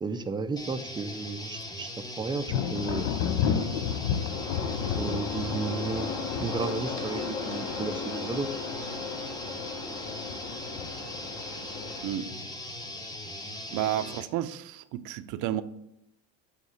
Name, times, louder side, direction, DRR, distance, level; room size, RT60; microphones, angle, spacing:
voice 1, 0.0-1.9 2.2-3.1 5.0-6.1 6.4-8.5, right 4 dB, 15° right, 9 dB, 0.3 m, -33 dB
sound 1, 0.6-14.3, left 1 dB, 10° left, 0.7 m, -40 dB
Thunder, 2.4-8.9 9.2-9.8 10.3-11.1, left 8 dB, 80° left, 0.7 m, -32 dB
sound 2, 4.3-12.0, left 4 dB, 55° left, 1.3 m, -36 dB
voice 2, 13.7-15.6, right 12 dB, 65° right, 11 dB, 0.6 m, -31 dB
7.4 x 3.5 x 6.4 m, 0.78 s
cardioid pair, 135°, 34 cm